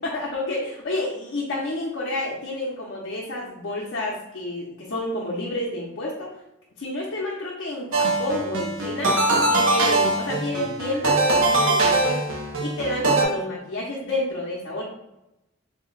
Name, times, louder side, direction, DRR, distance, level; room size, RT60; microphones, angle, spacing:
voice 1, 0.0-6.4 6.8-9.1 9.5-12.3 12.6-14.8, left 1 dB, 65° left, -4 dB, 0.6 m, -29 dB
sound 1, 7.9-13.2, right 2 dB, 80° right, 0.7 m, -22 dB
3.4 x 2.1 x 3.8 m, 0.88 s
head